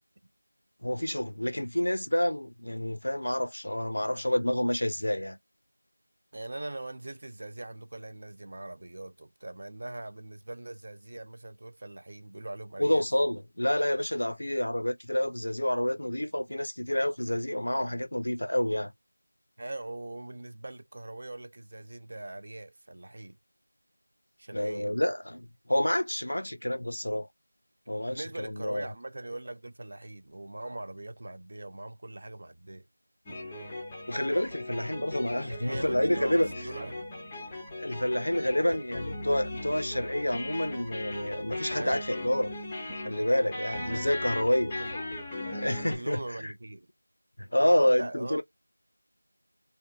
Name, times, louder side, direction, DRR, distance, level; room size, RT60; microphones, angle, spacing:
voice 1, 0.8-5.4 12.8-18.9 24.5-27.3 27.9-28.9 34.1-36.5 37.8-42.5 43.0-44.8 45.4-46.5 47.4-48.4, left 1 dB, 75° left, 0.6 m, -28 dB
voice 2, 6.3-13.0 15.4-15.5 16.1-16.2 19.6-23.4 24.4-24.9 28.0-32.9 35.5-37.0 38.6-38.8 41.7-42.0 43.9-44.1 44.8-44.9 45.9-46.9 47.6-48.4, right 2 dB, 40° right, 0.5 m, -41 dB
sound 1, 33.3-46.0, left 1 dB, 10° left, 0.6 m, -38 dB
3.4 x 2.3 x 2.6 m
figure-of-eight pair, 175°, 0 cm